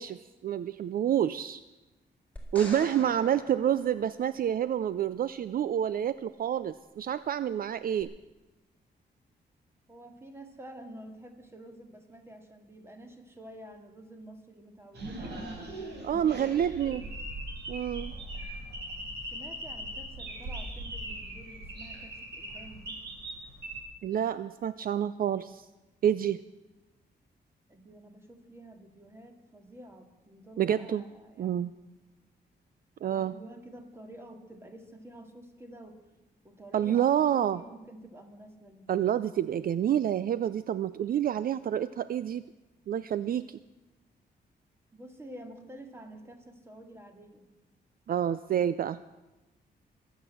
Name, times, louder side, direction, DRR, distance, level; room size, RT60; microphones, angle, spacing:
voice 1, 0.0-1.6 2.5-8.1 16.0-17.0 17.7-18.1 24.0-25.7 26.0-26.4 30.6-31.0 31.4-31.7 33.0-33.3 36.7-37.6 38.9-42.4 42.9-43.6 48.1-49.0, right 10 dB, 55° right, 15 dB, 0.4 m, -28 dB
sound 1, 2.4-4.7 8.0-8.1, left 1 dB, 10° left, 3.9 m, -45 dB
voice 2, 9.9-15.6 16.3-17.1 19.3-23.0 27.7-31.7 33.1-36.0 36.4-38.9 44.9-47.5, right 1 dB, 15° right, 5 dB, 2.1 m, -49 dB
sound 2, 14.9-23.8, right 1 dB, 75° right, 4.1 m, -40 dB
23.0 x 8.2 x 7.6 m, 1.1 s
wide cardioid pair, 145°, 17 cm